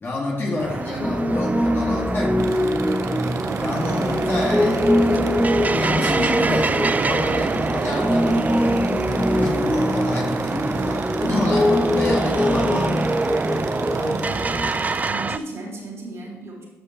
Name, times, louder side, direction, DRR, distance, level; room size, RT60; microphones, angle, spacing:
voice 1, 0.0-2.6 3.6-4.9 5.7-8.8 9.4-12.9, left 2 dB, 40° left, -3 dB, 2.1 m, -28 dB
sound 1, 0.6-15.4, right 4 dB, 25° right, 0.3 m, -26 dB
Piano, 1.0-14.7, left 1 dB, 5° left, 0.7 m, -23 dB
sound 2, 2.4-15.1, right 6 dB, 70° right, 0.7 m, -35 dB
voice 2, 13.9-14.4 15.0-16.6, right 2 dB, 50° right, -3 dB, 2.9 m, -35 dB
13.0 x 5.2 x 3.0 m, 1.1 s
hypercardioid pair, 50°, 6 cm